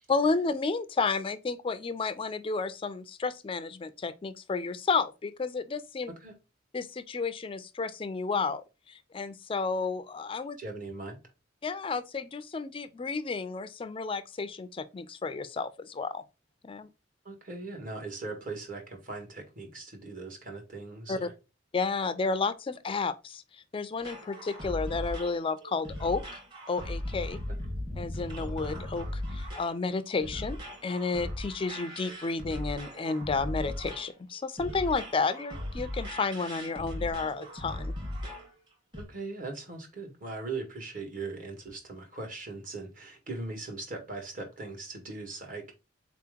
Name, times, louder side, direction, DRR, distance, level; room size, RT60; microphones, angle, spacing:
voice 1, 0.1-6.1 6.7-10.6 11.6-16.2 16.6-16.9 21.1-21.3 21.7-26.4 26.7-27.4 28.0-37.9, left 4 dB, 30° left, 0.4 m, -32 dB
voice 2, 10.6-11.2 17.2-21.3 27.5-27.6 39.0-45.7, right 3 dB, 45° right, 1.3 m, -39 dB
sound 1, 24.0-38.5 38.9-39.0, left 1 dB, 25° right, 1.1 m, -38 dB
4.1 x 2.9 x 3.5 m
head